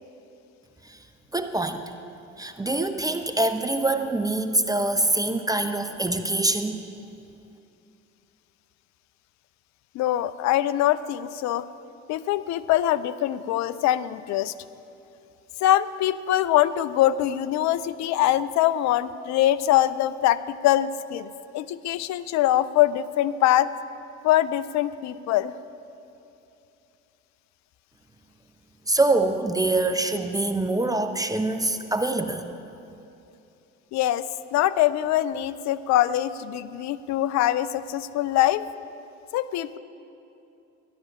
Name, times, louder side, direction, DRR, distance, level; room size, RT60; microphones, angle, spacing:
voice 1, 1.3-1.8 2.4-6.8 28.9-32.5, right 2 dB, 10° right, 7 dB, 0.8 m, -24 dB
voice 2, 9.9-11.6 12.1-14.5 15.6-23.7 24.2-25.5 33.9-38.6 39.3-39.8, left 13 dB, 50° left, 15 dB, 0.5 m, -23 dB
14.0 x 11.0 x 4.9 m, 2.8 s
hypercardioid pair, 60°, 35 cm